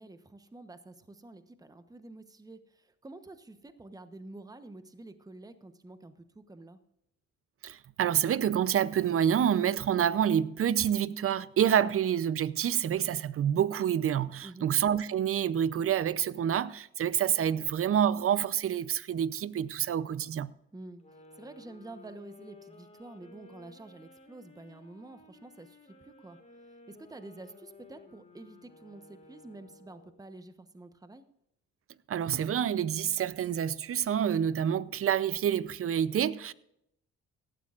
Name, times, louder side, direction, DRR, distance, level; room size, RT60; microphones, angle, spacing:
voice 1, 0.0-6.8 14.4-14.7 20.7-26.4 26.6-31.3, right 2 dB, 10° right, 1.0 m, -49 dB
voice 2, 7.6-20.5 32.1-36.5, right 9 dB, 45° right, 0.6 m, -28 dB
sound 1, 21.0-30.2, left 2 dB, 25° left, 3.2 m, -55 dB
17.0 x 12.5 x 2.5 m
cardioid pair, 90°, 30 cm